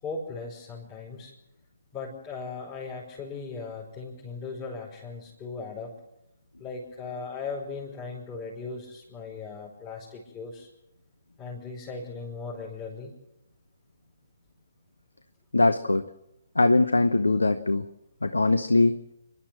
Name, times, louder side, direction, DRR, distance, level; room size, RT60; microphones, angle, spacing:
voice 1, 0.0-1.3 1.9-5.9 6.6-10.7 11.4-13.1, left 4 dB, 25° left, -4 dB, 5.3 m, -38 dB
voice 2, 15.5-16.1 16.6-17.9 18.2-19.0, left 2 dB, 85° left, 12 dB, 0.9 m, -21 dB
29.5 x 12.0 x 7.7 m, 0.88 s
figure-of-eight pair, 135°, 0 cm